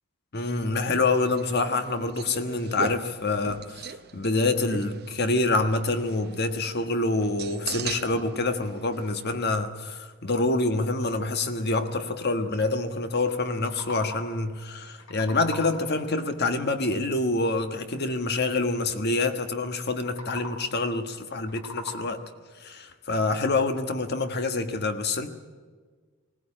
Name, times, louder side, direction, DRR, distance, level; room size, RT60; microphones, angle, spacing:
voice 1, 0.3-22.2 22.6-25.3, left 2 dB, 55° left, 8 dB, 1.5 m, -26 dB
sound 1, 1.3-9.6, right 6 dB, 50° right, 0.7 m, -40 dB
sound 2, 13.5-14.5 14.8-16.0 19.9-20.8 21.3-22.4, left 3 dB, 90° left, 2.8 m, -41 dB
20.0 x 18.0 x 8.8 m, 1.5 s
head